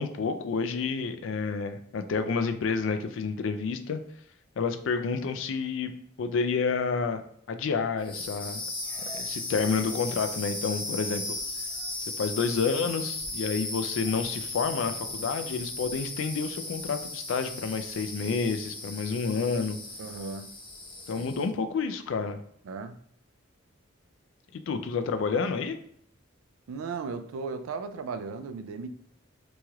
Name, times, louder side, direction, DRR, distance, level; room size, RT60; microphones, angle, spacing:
voice 1, 0.0-4.0 4.6-5.9 6.2-7.2 7.5-8.6 9.1-11.4 12.2-19.8 21.1-22.4 24.5-25.8, left 5 dB, 70° left, 8 dB, 0.3 m, -29 dB
sound 1, 8.0-21.5, left 2 dB, 25° left, 0.6 m, -36 dB
voice 2, 20.0-20.5 21.1-21.3 22.6-23.0 26.7-28.9, right 4 dB, 90° right, 8 dB, 0.3 m, -36 dB
3.0 x 2.8 x 2.3 m, 0.66 s
head